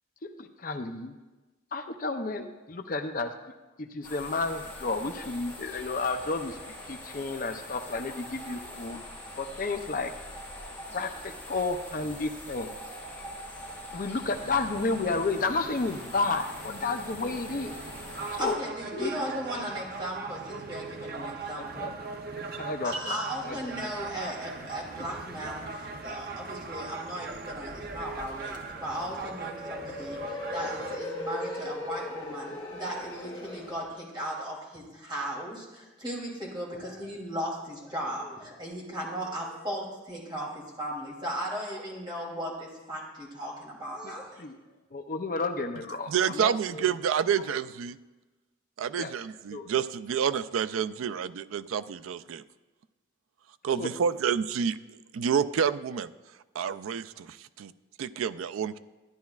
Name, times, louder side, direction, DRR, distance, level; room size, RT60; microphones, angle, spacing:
voice 1, 0.2-1.2 1.7-3.3 3.8-6.6 6.9-9.0 9.4-10.1 10.9-12.7 13.9-17.7 18.3-18.6 18.9-19.1 21.5-21.9 22.6-23.2 23.4-23.7 44.0-44.6 44.9-46.9 49.0-49.1 49.5-49.7 53.8-53.9, left 3 dB, 45° left, 7 dB, 0.5 m, -32 dB
sound 1, 4.0-18.5, left 1 dB, 10° left, 3.4 m, -43 dB
sound 2, 14.2-31.0, right 4 dB, 50° right, 0.6 m, -40 dB
voice 2, 18.4-22.0 22.8-44.4, equal, 25° right, -5 dB, 2.9 m, -37 dB
sound 3, 27.3-33.9, left 1 dB, 25° left, 1.3 m, -39 dB
voice 3, 46.1-48.0 48.8-52.4 53.6-56.1 56.5-57.7 58.0-58.8, right 7 dB, 90° right, 14 dB, 0.4 m, -29 dB
13.5 x 10.5 x 2.4 m, 1.2 s
head